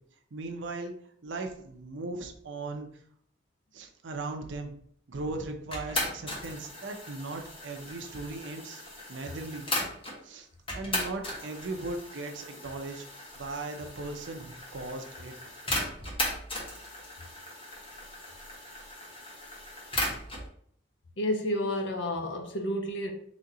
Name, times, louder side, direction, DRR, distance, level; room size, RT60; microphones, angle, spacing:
voice 1, 0.3-0.9 1.2-2.9 3.7-4.7 5.1-8.8 9.1-9.7 10.2-15.3, right 2 dB, 85° right, 0.6 m, -38 dB
sound 1, 5.7-10.2 10.7-20.5, left 1 dB, 30° left, 1.2 m, -37 dB
voice 2, 21.2-23.1, left 1 dB, 75° left, 0.8 m, -30 dB
4.1 x 2.9 x 3.7 m
head